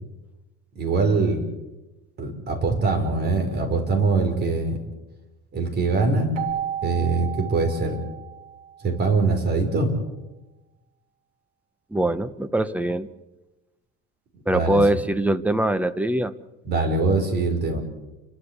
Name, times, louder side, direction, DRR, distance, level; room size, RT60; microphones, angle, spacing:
voice 1, 0.8-1.4 2.2-4.8 5.5-6.3 6.8-8.0 8.8-9.9 14.5-14.8 16.7-17.8, right 3 dB, 35° right, 5 dB, 5.3 m, -23 dB
Keyboard (musical), 6.3-9.0, right 10 dB, 75° right, 3.2 m, -33 dB
voice 2, 11.9-13.1 14.5-16.3, right 1 dB, 5° right, 12 dB, 0.9 m, -22 dB
29.5 x 13.0 x 8.2 m, 1.1 s
cardioid pair, 145°, 29 cm